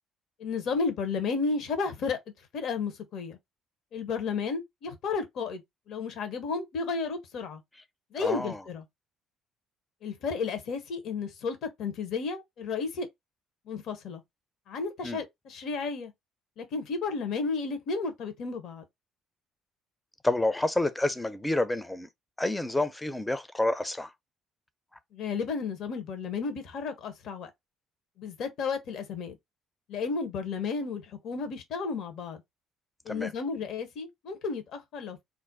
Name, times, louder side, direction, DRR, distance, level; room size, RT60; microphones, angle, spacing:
voice 1, 0.4-2.2 2.5-3.4 3.9-5.6 5.9-7.6 8.1-8.8 10.0-13.1 13.7-14.2 14.7-16.1 16.6-18.8 25.1-27.5 28.2-29.4 29.9-32.4 33.1-35.2, left 4 dB, 60° left, 0.7 m, -32 dB
voice 2, 8.2-8.6 15.0-15.2 20.2-22.1 22.4-24.1 33.1-33.3, left 2 dB, 10° left, 0.5 m, -29 dB
2.4 x 2.0 x 3.8 m
hypercardioid pair, 55°, 0 cm